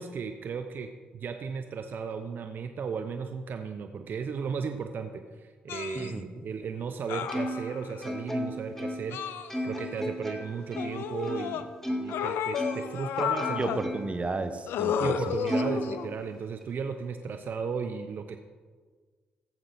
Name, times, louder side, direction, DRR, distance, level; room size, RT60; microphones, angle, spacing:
voice 1, 0.0-9.3 9.6-13.7 15.0-18.4, right 6 dB, 55° right, 7 dB, 0.7 m, -35 dB
sound 1, 5.7-6.1 7.1-8.0 9.1-10.0 10.8-11.6 12.1-13.8 14.7-16.2 17.3-17.5, left 8 dB, 75° left, 0.5 m, -32 dB
voice 2, 5.9-6.5 13.6-15.3, right 3 dB, 30° right, 8 dB, 1.1 m, -33 dB
Plucked string instrument, 7.3-12.2 12.5-14.3 14.7-14.8 15.5-16.6, equal, 10° left, 2.0 m, -35 dB
15.0 x 7.6 x 4.2 m, 1.5 s
supercardioid pair, 50°, 4 cm